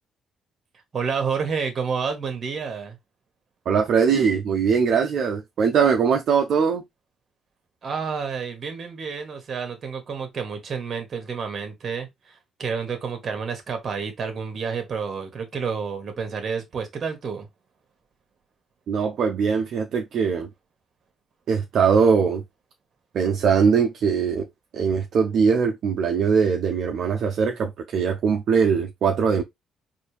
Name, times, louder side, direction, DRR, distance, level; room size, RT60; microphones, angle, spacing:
voice 1, 0.9-3.0 7.8-17.5, right 5 dB, 50° right, 1.4 m, -29 dB
voice 2, 3.7-6.8 18.9-20.5 21.5-22.4 23.1-24.5 24.7-29.4, right 6 dB, 70° right, 0.6 m, -21 dB
4.3 x 2.7 x 3.2 m
cardioid pair, 90°, 0 cm